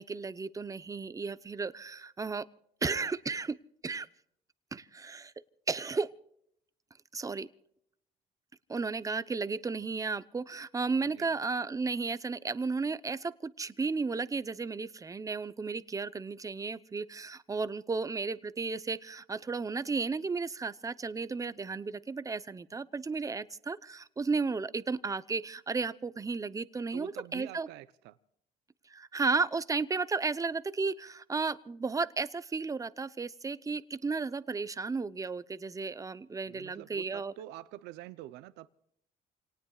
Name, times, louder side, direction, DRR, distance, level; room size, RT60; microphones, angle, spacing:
voice 1, 0.0-2.5 2.8-3.6 3.8-4.1 4.7-5.3 5.7-6.1 7.1-7.5 8.7-27.7 28.8-37.3, right 4 dB, 20° right, 0.8 m, -34 dB
voice 2, 11.0-11.4 26.9-28.2 36.5-38.7, right 14 dB, 90° right, 0.7 m, -46 dB
29.5 x 18.5 x 2.4 m
cardioid pair, 110°, 17 cm